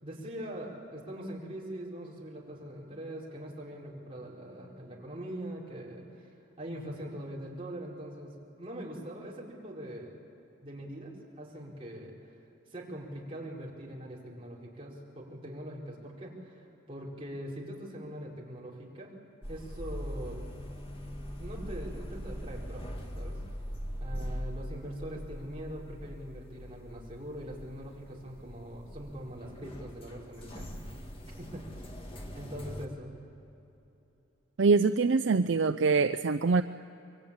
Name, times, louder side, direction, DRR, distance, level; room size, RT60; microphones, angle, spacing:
voice 1, 0.0-10.1 10.6-12.1 12.7-19.1 19.5-20.4 21.4-23.4 24.0-30.7 31.2-31.8 32.3-33.1, right 1 dB, 25° right, -4 dB, 4.7 m, -42 dB
sound 1, 19.4-32.9, equal, 25° left, 1.8 m, -41 dB
voice 2, 34.6-36.6, right 4 dB, 65° right, 10 dB, 0.5 m, -24 dB
25.0 x 23.0 x 8.9 m, 3.0 s
head